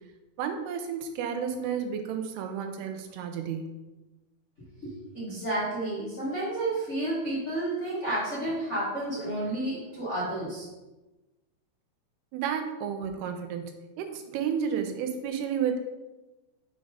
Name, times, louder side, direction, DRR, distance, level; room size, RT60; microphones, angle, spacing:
voice 1, 0.4-3.7 12.3-15.8, right 7 dB, 90° right, 6 dB, 2.8 m, -32 dB
voice 2, 4.8-10.6, right 1 dB, 85° left, -9 dB, 0.6 m, -31 dB
6.5 x 4.0 x 5.0 m, 1.1 s
omnidirectional pair, 4.5 m